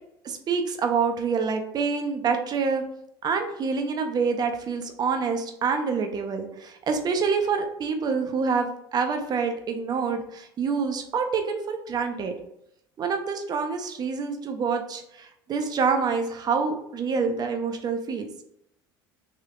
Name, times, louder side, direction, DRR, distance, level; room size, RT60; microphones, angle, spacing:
voice 1, 0.2-2.8 3.2-12.3 13.0-18.3, right 5 dB, 35° right, 5 dB, 0.6 m, -27 dB
3.6 x 2.7 x 3.7 m, 0.77 s
hypercardioid pair, 70°, 12 cm